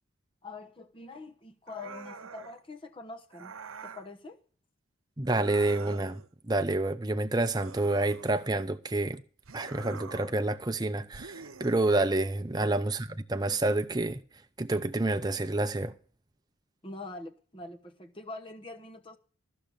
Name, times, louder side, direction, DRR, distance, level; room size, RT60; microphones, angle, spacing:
voice 1, 0.4-3.5 3.8-4.4 16.8-19.2, left 2 dB, 25° left, 1.2 m, -44 dB
sound 1, 1.7-2.6 3.3-4.1 5.2-6.3 7.5-8.7 9.4-10.4 11.1-12.1, right 5 dB, 80° right, 0.9 m, -46 dB
voice 2, 5.2-6.2 6.5-9.2 9.5-14.2 14.6-15.9, right 2 dB, 20° right, 0.6 m, -28 dB
14.0 x 6.4 x 7.2 m
head